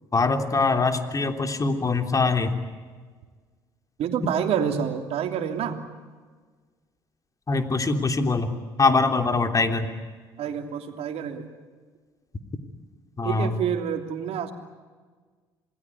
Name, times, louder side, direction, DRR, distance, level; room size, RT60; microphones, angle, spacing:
voice 1, 0.1-2.5 7.5-9.9 13.2-13.5, left 3 dB, 30° left, 7 dB, 3.4 m, -23 dB
voice 2, 4.0-5.8 10.4-11.5 13.2-14.5, right 8 dB, 60° right, 6 dB, 3.1 m, -28 dB
28.0 x 20.0 x 9.7 m, 1.5 s
hypercardioid pair, 60°, 11 cm